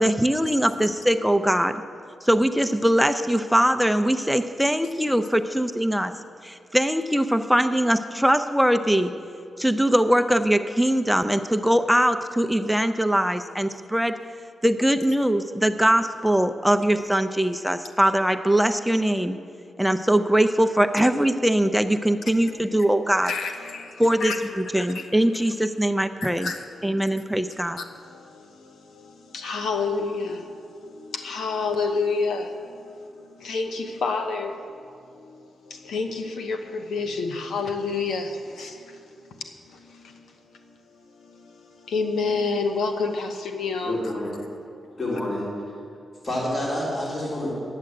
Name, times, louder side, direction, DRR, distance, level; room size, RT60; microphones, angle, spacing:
voice 1, 0.0-1.8 2.2-6.1 6.4-9.1 9.6-14.2 14.6-19.4 19.8-23.3 24.0-26.5 26.8-27.8, right 1 dB, ahead, 9 dB, 0.5 m, -21 dB
voice 2, 23.2-24.4 24.6-25.1 26.2-27.1 27.8-44.1 44.7-44.9, left 4 dB, 85° left, 5 dB, 1.1 m, -30 dB
voice 3, 43.8-44.3 45.0-45.5 46.2-47.5, left 1 dB, 45° left, -5 dB, 3.2 m, -28 dB
11.0 x 8.4 x 7.8 m, 2.5 s
cardioid pair, 75°, 0 cm